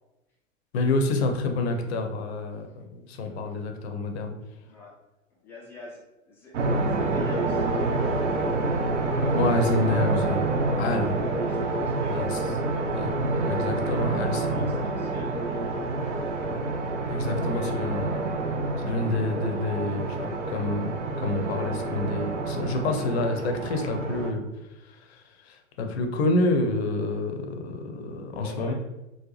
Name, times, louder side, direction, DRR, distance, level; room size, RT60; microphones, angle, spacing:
voice 1, 0.7-4.3 9.3-10.4 10.8-11.1 12.1-12.4 12.9-13.1 13.5-14.7 17.1-18.1 18.9-24.4 25.5-28.7, left 2 dB, 55° left, 4 dB, 0.7 m, -28 dB
voice 2, 1.5-2.0 3.2-3.6 4.6-4.9 5.3-6.5 6.8-13.2 14.0-15.9 17.4-18.2 28.4-28.7, left 1 dB, 5° left, -5 dB, 0.3 m, -45 dB
sound 1, 6.5-24.3, right 2 dB, 65° right, 0.7 m, -27 dB
3.9 x 2.2 x 3.0 m, 0.98 s
figure-of-eight pair, 100°, 40 cm